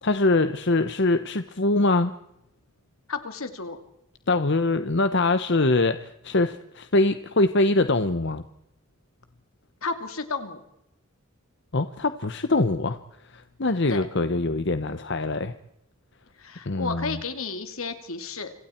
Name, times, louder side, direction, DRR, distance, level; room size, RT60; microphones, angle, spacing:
voice 1, 0.0-2.1 4.3-8.4 11.7-13.0 13.3-15.5 16.7-17.2, left 2 dB, 55° left, 10 dB, 1.0 m, -23 dB
voice 2, 3.1-3.8 9.8-10.6 13.9-14.1 16.4-18.5, left 4 dB, 75° left, 8 dB, 2.7 m, -32 dB
28.5 x 26.5 x 4.5 m, 0.84 s
head